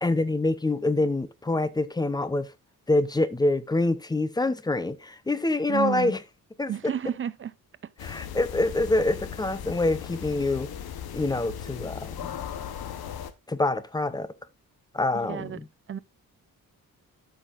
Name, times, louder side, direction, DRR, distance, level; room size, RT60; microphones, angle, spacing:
voice 1, 0.0-2.5 2.9-6.2 6.6-6.7 8.0-10.7 11.1-12.3 13.5-14.3 14.9-15.6, left 2 dB, 10° left, 0.6 m, -26 dB
voice 2, 5.7-6.1 6.7-7.5 7.8-7.9 15.1-15.6 15.9-16.0, right 9 dB, 35° right, 0.4 m, -31 dB
sound 1, 8.0-13.3, left 9 dB, 90° left, 1.0 m, -37 dB
12.5 x 5.8 x 2.5 m
wide cardioid pair, 140°, 36 cm